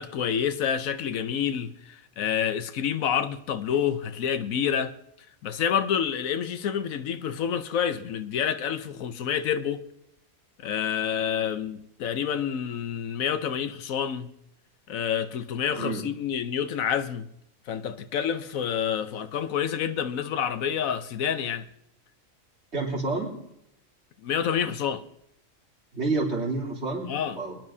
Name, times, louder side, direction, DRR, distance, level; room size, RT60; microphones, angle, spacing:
voice 1, 0.0-4.9 5.4-9.8 10.6-14.3 14.9-17.3 17.7-21.6 24.2-25.0 27.1-27.4, left 8 dB, 85° left, 1.2 m, -28 dB
voice 2, 22.7-23.3 25.9-27.6, right 3 dB, 55° right, 3.7 m, -29 dB
22.5 x 10.5 x 2.7 m
omnidirectional pair, 1.4 m